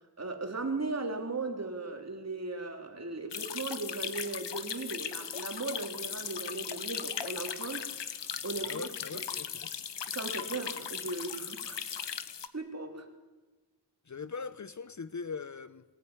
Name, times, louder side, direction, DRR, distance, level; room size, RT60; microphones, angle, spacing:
voice 1, 0.2-8.9 10.1-12.1 12.5-13.1, right 3 dB, 40° right, 3.6 m, -37 dB
sound 1, 3.3-12.5, left 8 dB, 90° left, 1.3 m, -38 dB
voice 2, 8.6-9.7 14.1-15.8, left 5 dB, 45° left, 0.9 m, -41 dB
22.5 x 18.5 x 9.8 m
wide cardioid pair, 105°, 42 cm